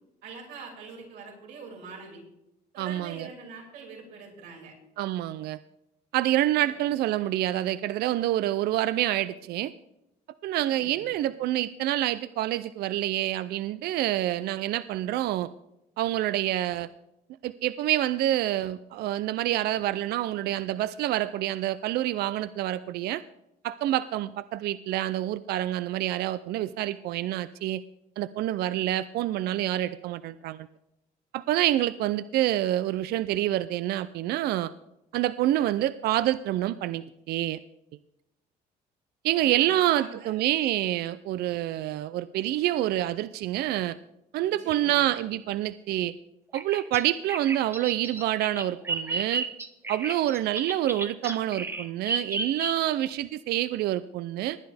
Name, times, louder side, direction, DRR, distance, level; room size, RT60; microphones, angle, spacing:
voice 1, 0.2-2.2 2.7-4.7 6.6-6.7 10.7-11.2 39.3-40.4 44.4-45.0, right 5 dB, 90° right, -2 dB, 5.6 m, -44 dB
voice 2, 2.8-3.3 5.0-5.6 6.1-9.7 10.4-15.5 16.0-16.9 17.4-23.2 23.6-27.8 28.2-30.7 31.3-34.7 35.1-37.6 39.2-44.0 44.3-46.1 46.5-49.4 49.9-54.6, right 14 dB, 70° right, 15 dB, 0.4 m, -27 dB
Bird vocalization bird call bird song, 46.5-53.1, right 3 dB, 15° right, 0.9 m, -33 dB
19.0 x 10.5 x 3.4 m, 0.86 s
cardioid pair, 110°, 17 cm